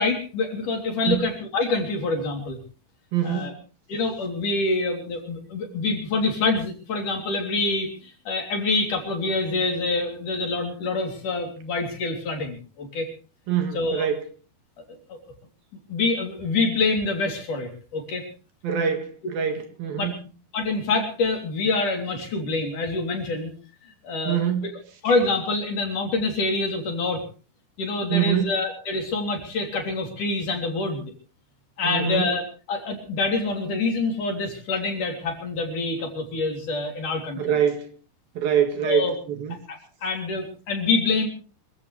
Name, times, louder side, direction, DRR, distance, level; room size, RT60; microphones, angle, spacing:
voice 1, 0.0-2.6 3.2-3.5 3.9-13.1 13.7-14.1 15.1-15.2 15.9-18.3 20.0-20.1 20.5-23.5 24.0-24.4 25.0-27.2 27.8-31.1 31.8-32.4 32.7-37.6 38.8-39.1 39.7-41.3, left 3 dB, 50° left, 4.6 m, -26 dB
voice 2, 3.1-3.6 13.5-14.2 18.6-20.2 24.3-24.7 28.1-28.5 31.8-32.3 37.4-37.9 38.4-39.6, right 8 dB, 65° right, 3.5 m, -24 dB
25.5 x 16.0 x 3.3 m
omnidirectional pair, 4.7 m